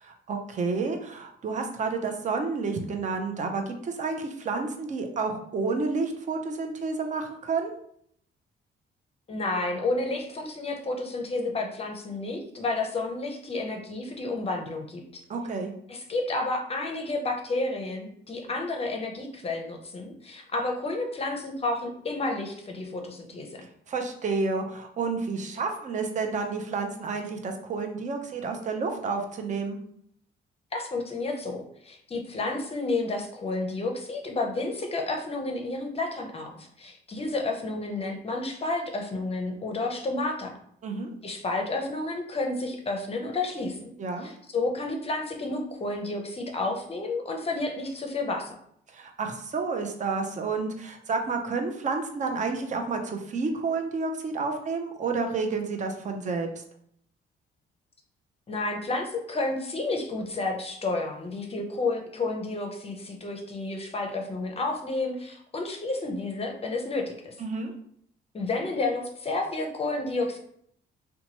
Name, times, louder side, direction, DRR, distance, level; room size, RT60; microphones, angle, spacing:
voice 1, 0.0-7.7 15.3-15.7 23.9-29.8 40.8-41.1 44.0-44.3 48.9-56.5 67.4-67.7, right 4 dB, 40° right, 4 dB, 0.5 m, -30 dB
voice 2, 9.3-15.2 15.9-23.6 30.7-40.6 41.2-43.9 44.2-48.5 58.5-67.3 68.3-70.4, left 2 dB, 30° left, 2 dB, 0.6 m, -31 dB
2.8 x 2.2 x 2.8 m, 0.67 s
cardioid pair, 90°, 20 cm